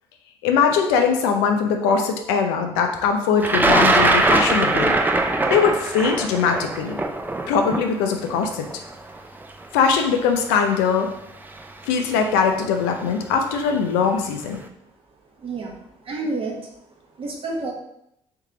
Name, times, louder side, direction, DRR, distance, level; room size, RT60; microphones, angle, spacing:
voice 1, 0.4-5.0 5.5-7.0 7.5-8.7 9.7-11.1 11.9-14.6, left 6 dB, 90° left, 4 dB, 0.5 m, -21 dB
Thunder, 3.4-9.4 10.4-10.5 11.6-11.8 12.2-12.6, right 2 dB, 15° right, 0.5 m, -21 dB
voice 2, 15.4-15.8 16.1-16.6 17.2-17.7, right 3 dB, 50° right, -1 dB, 1.2 m, -28 dB
3.4 x 3.2 x 3.8 m, 0.78 s
supercardioid pair, 60°, 12 cm